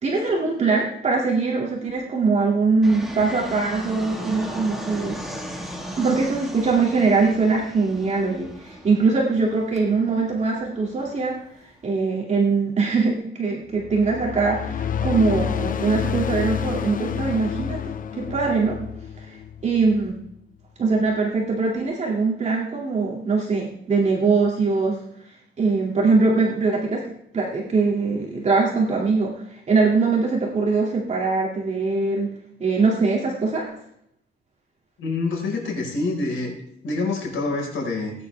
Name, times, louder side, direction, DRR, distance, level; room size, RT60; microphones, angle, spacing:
voice 1, 0.0-5.2 6.0-11.4 11.8-17.8 18.1-18.8 19.6-20.2 20.8-25.0 25.6-27.0 27.3-32.3 32.6-33.6, right 4 dB, 35° right, -3 dB, 2.3 m, -22 dB
Fixed-wing aircraft airplane, 2.8-11.9, equal, ahead, 1.7 m, -37 dB
sound 1, 13.7-20.4, left 8 dB, 45° left, 0.6 m, -29 dB
voice 2, 35.0-36.5 36.8-38.1, left 3 dB, 80° left, -1 dB, 4.6 m, -26 dB
18.5 x 9.6 x 3.4 m, 0.72 s
wide cardioid pair, 170°, 20 cm